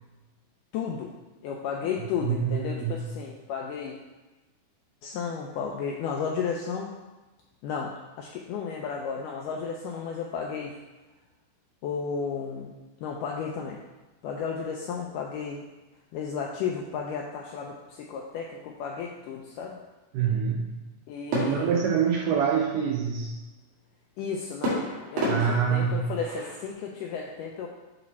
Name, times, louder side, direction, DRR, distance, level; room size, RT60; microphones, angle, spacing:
voice 1, 0.7-1.1 1.4-4.0 5.0-6.9 7.6-10.8 11.8-13.8 14.2-15.6 16.1-19.8 21.1-21.8 24.2-24.9 25.1-27.7, left 6 dB, 80° left, 0 dB, 1.9 m, -33 dB
voice 2, 2.2-3.1 20.1-20.8 21.3-23.4 25.2-26.1, right 7 dB, 85° right, 1 dB, 1.9 m, -26 dB
sound 1, 21.3-22.9 24.6-26.7, equal, 65° right, 3.5 m, -32 dB
9.3 x 3.2 x 4.1 m, 1.1 s
omnidirectional pair, 4.2 m